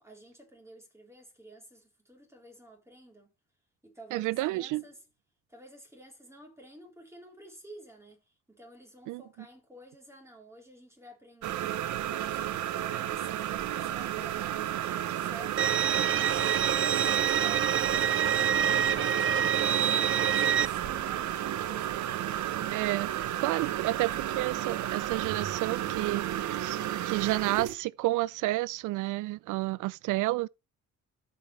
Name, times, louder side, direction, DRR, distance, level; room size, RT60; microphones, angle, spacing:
voice 1, 0.0-3.3 3.8-5.0 5.5-8.2 8.5-11.8 12.3-16.6 17.2-22.1, equal, 10° right, 3.7 m, -51 dB
voice 2, 4.1-4.8 9.1-9.2 22.7-23.1 23.4-30.5, right 18 dB, 90° right, 0.5 m, -30 dB
sound 1, 11.4-27.7, right 12 dB, 70° right, 0.9 m, -32 dB
Bowed string instrument, 15.6-20.7, right 8 dB, 45° right, 0.6 m, -26 dB
14.0 x 5.6 x 3.2 m
cardioid pair, 90°, 30 cm